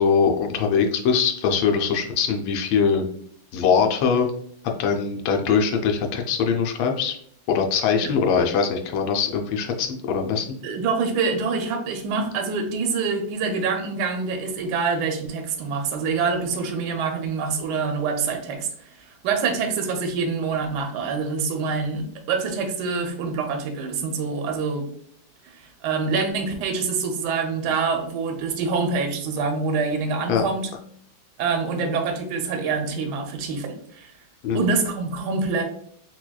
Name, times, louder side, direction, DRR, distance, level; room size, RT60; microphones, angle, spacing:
voice 1, 0.0-3.0 3.5-4.3 4.8-7.2 7.5-10.5 30.3-30.4 34.4-34.7, left 6 dB, 80° left, 3 dB, 1.3 m, -22 dB
voice 2, 10.6-24.9 25.4-30.7 31.4-34.1 34.5-35.6, right 4 dB, 75° right, 4 dB, 1.0 m, -26 dB
5.8 x 2.2 x 2.2 m, 0.64 s
omnidirectional pair, 2.2 m